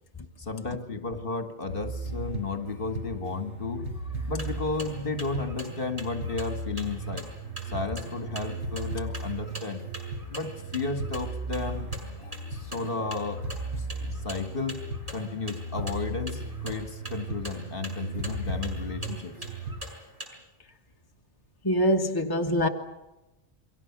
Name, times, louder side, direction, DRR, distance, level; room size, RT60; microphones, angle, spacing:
voice 1, 0.4-7.3 7.7-9.8 10.3-11.9 12.2-13.5 14.2-14.8 15.1-19.4, left 3 dB, 55° left, 6 dB, 2.2 m, -33 dB
sound 1, 1.7-19.8, right 1 dB, 80° right, 5.6 m, -36 dB
sound 2, 4.1-20.3, right 1 dB, 30° right, 6.4 m, -44 dB
voice 2, 21.6-22.7, equal, 20° left, 2 dB, 1.4 m, -24 dB
29.5 x 23.0 x 6.1 m, 1.0 s
omnidirectional pair, 1.2 m